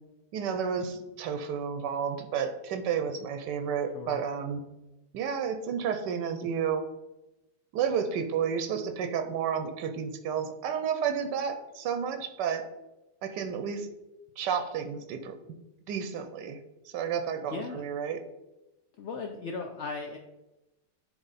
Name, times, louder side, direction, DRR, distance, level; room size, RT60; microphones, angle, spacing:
voice 1, 0.3-4.6 5.1-6.9 7.7-12.7 13.2-13.9 14.4-15.4 15.9-18.2, right 7 dB, 85° right, 8 dB, 1.3 m, -31 dB
voice 2, 17.5-17.8 19.0-20.2, left 4 dB, 75° left, 3 dB, 0.6 m, -37 dB
9.8 x 3.3 x 4.1 m, 0.98 s
omnidirectional pair, 1.8 m